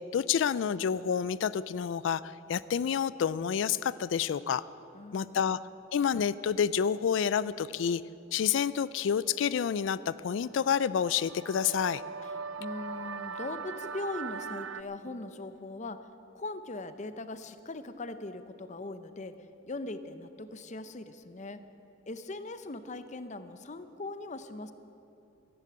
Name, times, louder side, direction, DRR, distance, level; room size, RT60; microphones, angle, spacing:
voice 1, 0.1-4.7 5.1-5.6 5.9-8.0 8.3-12.0, left 7 dB, 70° left, 18 dB, 0.3 m, -29 dB
voice 2, 4.9-5.5 12.2-16.1 16.3-21.6 22.1-24.7, left 2 dB, 40° left, 11 dB, 0.7 m, -40 dB
sound 1, 10.6-14.8, right 5 dB, 90° right, 0.5 m, -40 dB
14.5 x 10.5 x 8.6 m, 2.8 s
head